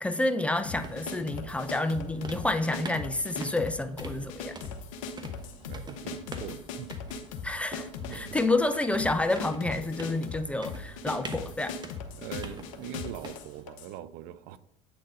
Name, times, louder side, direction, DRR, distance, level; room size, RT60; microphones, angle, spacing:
voice 1, 0.0-4.5 7.4-11.7, left 2 dB, 5° left, 0.5 m, -29 dB
sound 1, 0.5-13.7, right 3 dB, 25° right, 1.0 m, -46 dB
sound 2, 0.6-13.9, left 5 dB, 75° left, 0.7 m, -39 dB
voice 2, 5.4-6.9 8.0-8.4 12.2-14.6, right 11 dB, 65° right, 0.5 m, -43 dB
8.2 x 3.9 x 3.8 m
hypercardioid pair, 75°, 17 cm